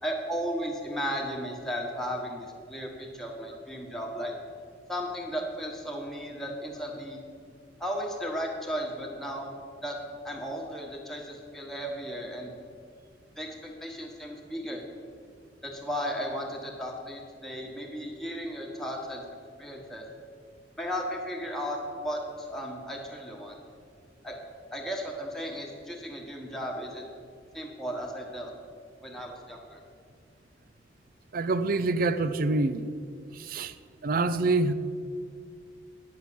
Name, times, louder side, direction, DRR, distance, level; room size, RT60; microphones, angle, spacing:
voice 1, 0.0-4.3 4.9-7.2 7.8-9.5 9.8-10.0 10.2-12.5 13.4-14.8 15.6-19.2 19.6-20.0 20.8-23.5 24.2-24.4 24.7-27.1 27.5-28.5 29.0-29.8, equal, ahead, -1 dB, 1.2 m, -35 dB
voice 2, 31.3-32.8 33.5-33.7 34.0-34.7, right 3 dB, 50° right, 13 dB, 0.4 m, -25 dB
9.8 x 6.1 x 6.9 m, 2.2 s
head